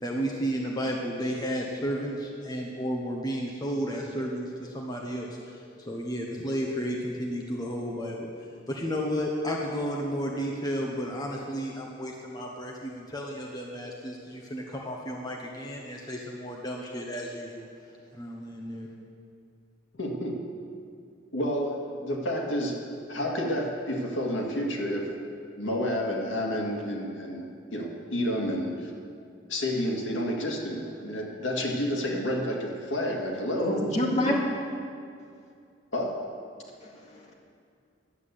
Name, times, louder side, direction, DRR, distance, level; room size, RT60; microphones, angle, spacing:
voice 1, 0.0-8.3 8.7-17.7 18.1-18.9, equal, 20° left, -1 dB, 1.0 m, -32 dB
voice 2, 20.0-20.4 21.3-22.8 23.1-25.1 25.6-28.9 29.5-33.8 34.1-34.4 35.9-36.1, equal, 85° left, 0 dB, 1.9 m, -30 dB
voice 3, 33.5-34.4 36.8-37.4, left 1 dB, 35° left, -3 dB, 2.2 m, -28 dB
12.0 x 8.1 x 8.2 m, 2.3 s
head